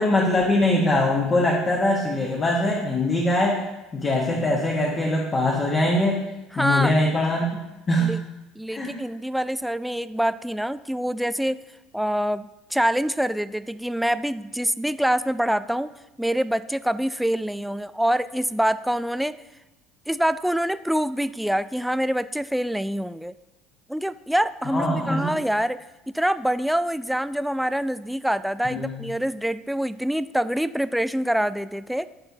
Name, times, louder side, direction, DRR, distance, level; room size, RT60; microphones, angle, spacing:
voice 1, 0.0-3.6 3.9-6.2 6.5-7.4 7.9-8.1 8.7-8.9 24.6-25.3 28.7-29.0, left 1 dB, 30° left, -2 dB, 1.5 m, -22 dB
voice 2, 6.5-6.9 8.0-8.2 8.6-11.6 11.9-15.9 16.2-19.4 20.1-23.3 23.9-25.8 26.1-32.1, equal, ahead, 14 dB, 0.3 m, -25 dB
13.0 x 4.5 x 2.8 m, 1.0 s
supercardioid pair, 90°, 0 cm